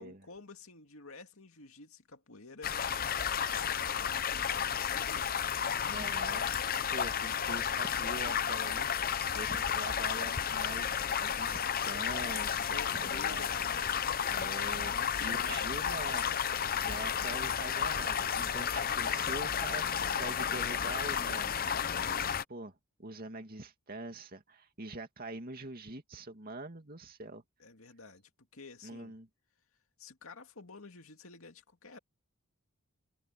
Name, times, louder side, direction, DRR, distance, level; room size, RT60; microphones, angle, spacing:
voice 1, 0.0-2.8 3.5-5.6 12.5-14.2 14.9-15.9 27.6-29.2 30.0-32.0, left 3 dB, 65° left, 2.4 m, -50 dB
sound 1, 2.6-22.4, left 8 dB, 40° left, 0.7 m, -32 dB
voice 2, 5.9-13.5 14.3-16.3 16.7-21.6 22.5-27.4 28.8-29.3, right 2 dB, 40° right, 2.5 m, -44 dB
head